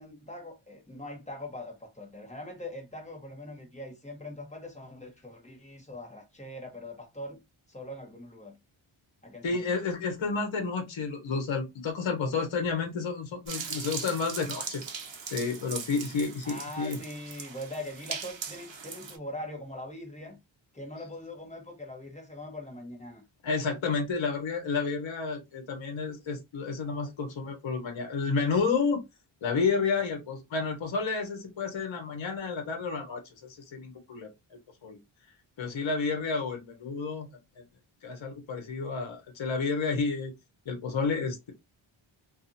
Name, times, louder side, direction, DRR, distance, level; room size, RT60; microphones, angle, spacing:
voice 1, 0.0-7.4 7.7-8.5 9.2-9.7 16.4-20.4 20.7-23.2, left 1 dB, 15° left, 1.0 m, -42 dB
voice 2, 9.4-14.8 15.3-17.0 23.4-29.0 29.4-33.3 33.7-35.0 35.6-37.3 38.0-40.3 40.7-41.5, left 4 dB, 65° left, 0.9 m, -30 dB
sound 1, 13.5-19.2, right 6 dB, 60° right, 0.8 m, -39 dB
2.6 x 2.4 x 2.6 m
wide cardioid pair, 100°, 50 cm